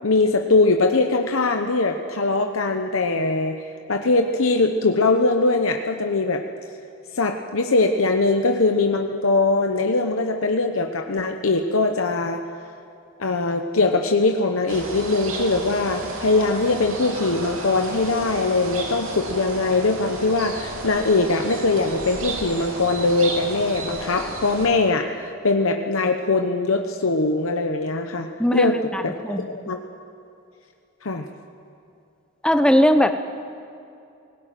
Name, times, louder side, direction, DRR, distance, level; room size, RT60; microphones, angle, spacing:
voice 1, 0.0-3.6 3.9-6.4 7.1-12.4 13.2-25.1 25.4-29.8 31.0-31.3, left 3 dB, 80° left, 4 dB, 1.0 m, -21 dB
sound 1, 14.7-24.7, right 2 dB, 80° right, 3.1 m, -32 dB
voice 2, 28.4-29.5 32.4-33.1, equal, 5° left, 7 dB, 0.8 m, -19 dB
18.5 x 17.0 x 9.2 m, 2.7 s
head